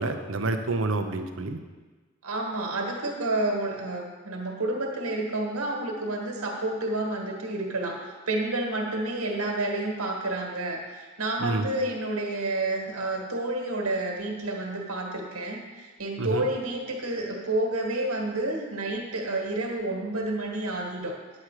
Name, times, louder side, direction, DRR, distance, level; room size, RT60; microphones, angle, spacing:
voice 1, 0.0-1.6 11.4-11.7 16.2-16.5, right 2 dB, 60° right, 6 dB, 0.8 m, -28 dB
voice 2, 2.2-21.2, right 2 dB, 85° right, 1 dB, 1.7 m, -30 dB
9.7 x 7.6 x 4.9 m, 1.3 s
head